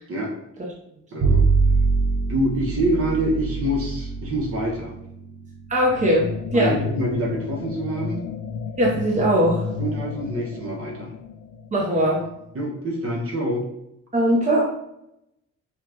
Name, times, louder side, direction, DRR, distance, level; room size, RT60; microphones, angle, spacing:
voice 1, 1.1-1.4 2.3-5.0 6.5-8.2 9.8-11.1 12.5-13.7, right 1 dB, 50° right, -1 dB, 1.3 m, -26 dB
Bowed string instrument, 1.2-7.7, right 4 dB, 70° right, 1.1 m, -25 dB
voice 2, 5.7-6.8 8.8-9.8 11.7-12.2 14.1-14.6, right 1 dB, 25° right, -3 dB, 1.0 m, -20 dB
sound 1, 5.8-12.6, left 5 dB, 70° left, 0.6 m, -33 dB
5.7 x 2.4 x 3.0 m, 0.81 s
cardioid pair, 90°, 30 cm